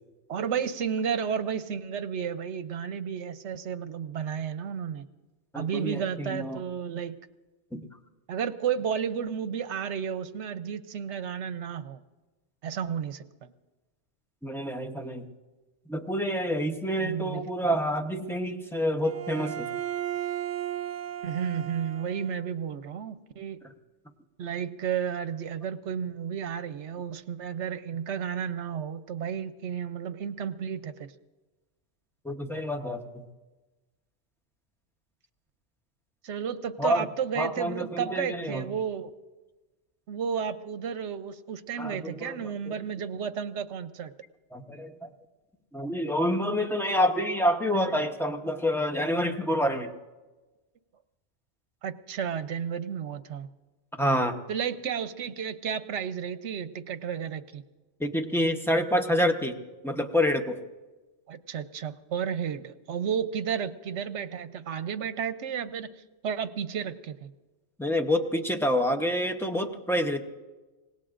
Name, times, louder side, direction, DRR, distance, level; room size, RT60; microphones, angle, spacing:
voice 1, 0.3-5.1 5.5-7.2 8.3-12.0 12.6-13.5 17.0-17.5 21.2-23.6 24.4-31.1 36.2-39.1 40.1-44.1 51.8-53.5 54.5-57.6 61.3-65.9 66.2-67.3, right 7 dB, 75° right, 11 dB, 1.0 m, -32 dB
voice 2, 5.5-6.6 7.7-7.9 14.4-15.2 15.9-19.7 32.2-33.2 36.8-37.0 37.4-38.6 41.8-42.7 44.5-45.1 45.7-49.9 54.0-54.4 58.0-59.6 59.8-60.6 67.8-70.2, equal, ahead, 4 dB, 0.8 m, -27 dB
Bowed string instrument, 19.0-22.5, right 11 dB, 50° right, 0.6 m, -35 dB
25.5 x 19.0 x 2.5 m, 1.2 s
omnidirectional pair, 1.2 m